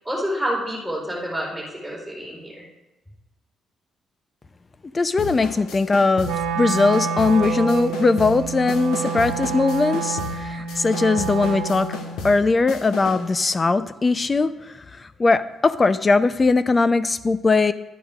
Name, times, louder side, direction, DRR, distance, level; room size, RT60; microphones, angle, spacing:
voice 1, 0.0-2.6, equal, 5° left, -5 dB, 4.4 m, -28 dB
voice 2, 4.9-12.0 12.2-17.7, left 3 dB, 30° left, 14 dB, 0.6 m, -20 dB
sound 1, 5.2-13.3, left 3 dB, 90° left, 1.2 m, -34 dB
Wind instrument woodwind instrument, 6.2-12.2, right 6 dB, 85° right, 1.2 m, -28 dB
12.0 x 9.3 x 3.6 m, 1.0 s
cardioid pair, 90°, 0 cm